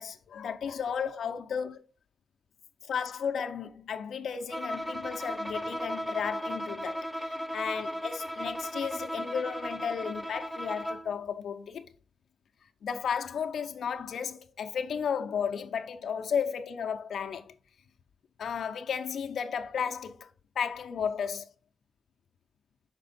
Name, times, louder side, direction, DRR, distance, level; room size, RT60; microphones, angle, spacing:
voice 1, 0.0-1.7 2.8-11.9 12.8-17.5 18.4-21.5, left 7 dB, 80° left, 0.5 m, -34 dB
Bowed string instrument, 4.5-11.2, equal, 5° right, 0.4 m, -36 dB
5.9 x 4.3 x 3.9 m
wide cardioid pair, 120°, 0 cm